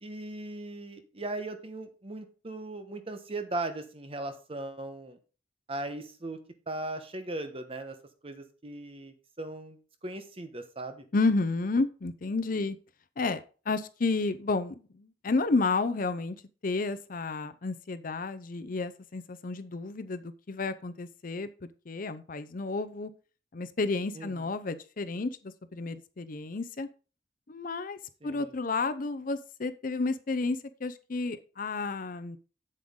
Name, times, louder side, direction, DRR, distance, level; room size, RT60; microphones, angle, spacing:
voice 1, 0.0-5.2 5.7-6.4 6.7-7.9 8.2-11.0 24.1-24.5 28.2-28.5, right 2 dB, 30° right, 8 dB, 1.1 m, -38 dB
voice 2, 11.1-12.8 13.2-13.4 13.7-16.4 16.6-21.5 21.9-23.1 23.5-26.9 27.5-32.4, left 3 dB, 50° left, 12 dB, 0.6 m, -31 dB
7.8 x 7.5 x 3.7 m, 0.36 s
head